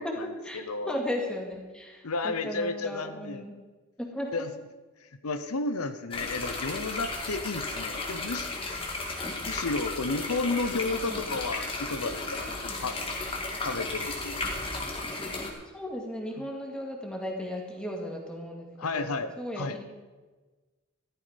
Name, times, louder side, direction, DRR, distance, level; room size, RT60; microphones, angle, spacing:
voice 1, 0.0-3.5 4.0-4.3 10.9-11.3 12.7-12.8 15.7-19.8, left 1 dB, 5° left, 0 dB, 2.2 m, -36 dB
voice 2, 0.5-0.9 2.0-3.4 4.3-4.5 5.0-8.5 9.5-13.0 13.6-14.5 18.8-19.7, left 3 dB, 85° left, 10 dB, 0.9 m, -32 dB
sound 1, 6.1-15.5, left 2 dB, 25° left, 2.0 m, -34 dB
14.5 x 12.5 x 5.2 m, 1.3 s
head